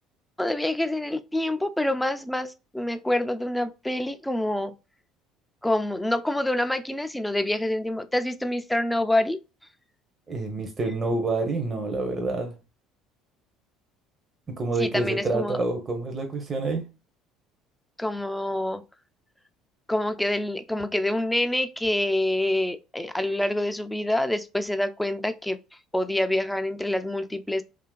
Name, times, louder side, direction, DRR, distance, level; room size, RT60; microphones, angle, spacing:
voice 1, 0.4-4.7 5.6-9.4 14.8-15.6 18.0-18.8 19.9-25.6 25.9-27.6, left 1 dB, 5° left, 0.3 m, -26 dB
voice 2, 10.3-12.6 14.5-16.9, right 3 dB, 30° right, 0.6 m, -27 dB
2.7 x 2.4 x 2.2 m
supercardioid pair, 85°, 0 cm